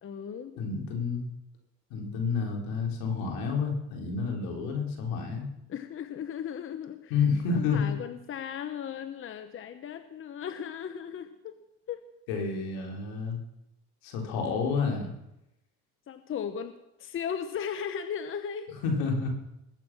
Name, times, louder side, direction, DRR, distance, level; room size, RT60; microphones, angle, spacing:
voice 1, 0.0-0.7 5.7-7.1 7.5-11.6 11.9-12.0 16.1-16.7 17.0-18.8, left 8 dB, 35° left, 10 dB, 1.0 m, -36 dB
voice 2, 0.6-1.3 1.9-5.5 7.1-7.9 12.3-13.4 14.0-15.1 18.8-19.3, left 5 dB, 80° left, 1 dB, 3.8 m, -29 dB
20.5 x 8.2 x 6.1 m, 0.86 s
supercardioid pair, 110°, 34 cm